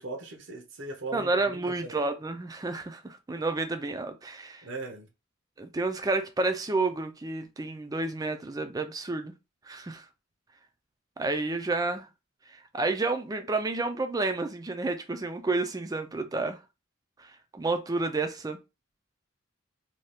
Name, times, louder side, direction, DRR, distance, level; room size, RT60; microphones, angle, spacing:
voice 1, 0.0-1.9 4.6-5.1, right 3 dB, 65° right, 0.7 m, -39 dB
voice 2, 1.1-4.7 5.6-9.3 9.7-10.0 11.2-12.1 12.5-16.6 17.2-18.6, right 3 dB, 20° right, 0.4 m, -30 dB
2.7 x 2.3 x 3.3 m
head